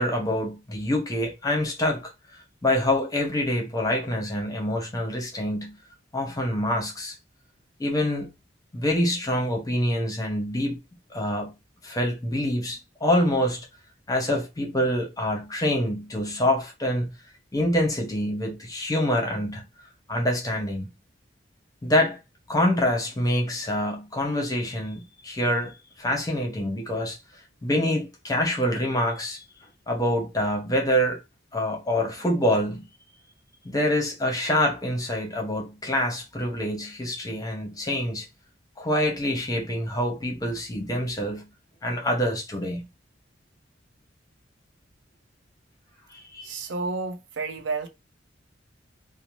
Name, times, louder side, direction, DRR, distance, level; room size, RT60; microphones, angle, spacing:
voice 1, 0.0-5.8 6.1-7.2 7.8-8.3 8.7-10.8 11.1-11.5 11.8-13.7 14.1-17.1 17.5-19.6 20.1-20.9 21.8-22.2 22.5-27.2 27.6-29.4 29.9-31.2 31.5-32.8 33.6-38.3 38.8-41.5 41.8-42.8 46.1-46.6, left 1 dB, 20° left, 0.7 m, -26 dB
voice 2, 46.4-47.9, right 4 dB, 70° right, 0.6 m, -30 dB
2.6 x 2.0 x 2.9 m
head